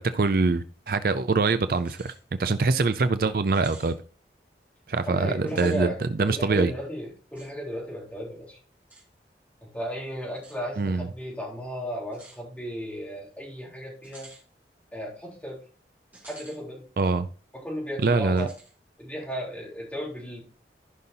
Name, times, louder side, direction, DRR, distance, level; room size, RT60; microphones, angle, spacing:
voice 1, 0.0-2.1 2.4-3.9 4.9-6.7 10.8-11.1 17.0-17.3 18.0-18.5, right 3 dB, 55° right, 11 dB, 0.5 m, -24 dB
sound 1, 1.7-2.2 2.6-2.7 3.5-4.0 5.4-5.8 7.3-7.5 8.9-9.1 10.3-10.6 12.1-12.4 14.0-14.4 16.1-16.6 17.0-17.1 18.4-18.7, right 2 dB, 10° right, 2.7 m, -49 dB
voice 2, 5.1-8.6 9.6-14.3 14.9-15.6 16.2-16.8 17.5-18.5 19.0-20.4, equal, 10° left, -4 dB, 3.8 m, -35 dB
15.0 x 5.5 x 2.8 m, 0.37 s
head